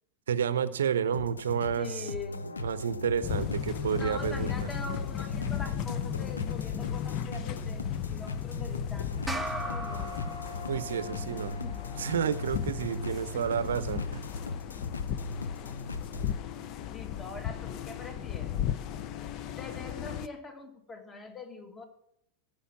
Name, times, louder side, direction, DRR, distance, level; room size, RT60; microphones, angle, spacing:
voice 1, 0.3-2.0 2.6-4.5 10.7-11.6 12.0-14.2, right 8 dB, 65° right, 15 dB, 0.7 m, -30 dB
sound 1, 1.1-16.4, left 2 dB, 75° left, 0.7 m, -39 dB
voice 2, 1.7-2.4 3.8-10.4 11.3-11.8 13.1-13.6 16.9-18.6 19.6-21.8, left 3 dB, 15° left, 7 dB, 1.5 m, -43 dB
sound 2, 3.2-20.3, left 11 dB, 40° left, 0.6 m, -36 dB
sound 3, 9.3-14.0, right 1 dB, ahead, 0.8 m, -41 dB
15.0 x 5.2 x 7.3 m, 0.75 s
figure-of-eight pair, 90°, 0 cm